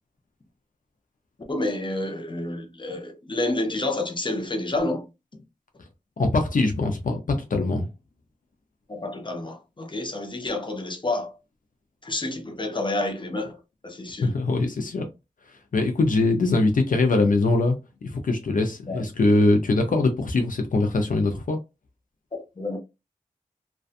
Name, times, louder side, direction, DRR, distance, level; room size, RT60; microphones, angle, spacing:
voice 1, 1.5-5.1 8.9-11.3 12.0-14.3 18.9-19.0 22.6-22.8, left 2 dB, 35° left, 0.6 m, -29 dB
voice 2, 6.2-7.9 14.2-15.1 15.7-17.8 18.0-21.6, left 2 dB, 80° left, 0.5 m, -22 dB
2.5 x 2.3 x 2.4 m
wide cardioid pair, 75°, 14 cm